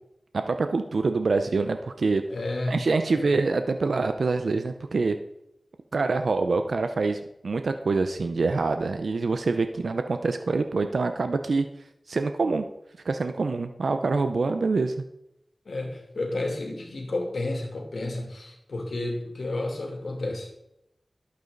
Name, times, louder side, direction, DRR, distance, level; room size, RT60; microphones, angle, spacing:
voice 1, 0.3-2.2 2.7-5.2 5.9-11.6 12.1-12.7 13.0-15.0, right 3 dB, 90° right, 8 dB, 0.6 m, -25 dB
voice 2, 2.3-2.8 3.1-3.4 15.6-20.5, left 2 dB, 85° left, 1 dB, 2.8 m, -31 dB
12.0 x 8.5 x 3.9 m, 0.81 s
cardioid pair, 40°, 0 cm